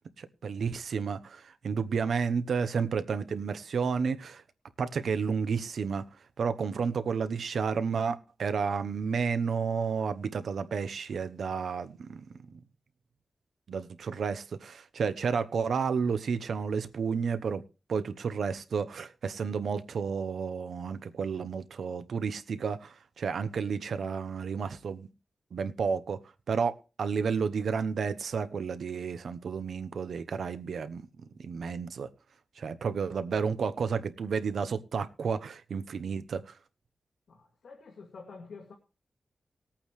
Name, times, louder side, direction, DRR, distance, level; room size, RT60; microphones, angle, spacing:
voice 1, 0.2-4.4 4.8-6.0 6.4-12.3 13.7-17.6 17.9-25.1 25.5-26.2 26.5-31.0 31.4-32.1 32.6-36.5, right 5 dB, 90° right, 0.9 m, -31 dB
voice 2, 37.3-38.7, left 4 dB, 80° left, 2.4 m, -48 dB
20.0 x 8.8 x 3.3 m
wide cardioid pair, 160°, 0 cm